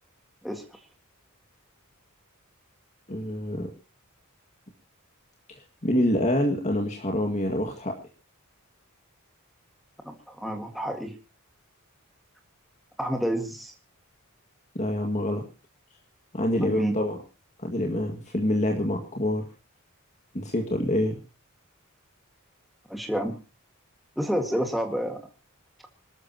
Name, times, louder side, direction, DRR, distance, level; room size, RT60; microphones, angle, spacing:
voice 1, 0.4-0.8 10.0-11.1 13.0-13.7 16.6-16.9 22.9-23.4 24.2-25.2, equal, ahead, 3 dB, 1.8 m, -29 dB
voice 2, 3.1-3.7 5.8-7.9 14.8-15.4 16.3-17.2 17.6-19.5 20.3-21.2, left 1 dB, 35° left, 2 dB, 2.0 m, -26 dB
26.5 x 13.5 x 2.9 m, 0.32 s
head